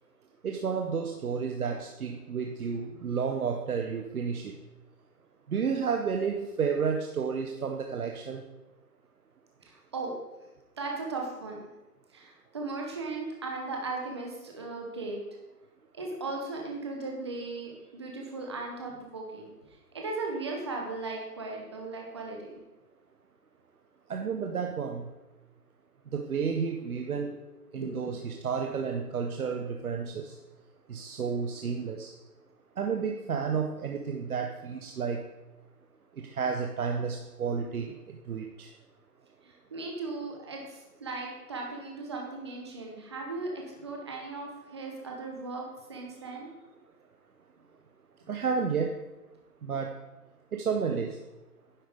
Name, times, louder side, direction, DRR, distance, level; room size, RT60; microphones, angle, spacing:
voice 1, 0.4-4.5 5.5-8.4 24.1-25.1 26.1-27.4 27.7-30.4 30.9-32.1 32.8-35.2 36.2-38.7 48.3-49.1 49.6-49.9 50.5-51.2, right 6 dB, 65° right, 3 dB, 0.9 m, -31 dB
voice 2, 9.6-10.1 10.8-11.6 12.1-15.2 15.9-19.5 19.9-22.6 27.8-28.1 39.4-46.5, right 3 dB, 20° right, 0 dB, 0.7 m, -37 dB
10.0 x 7.7 x 3.5 m, 1.0 s
hypercardioid pair, 160°, 47 cm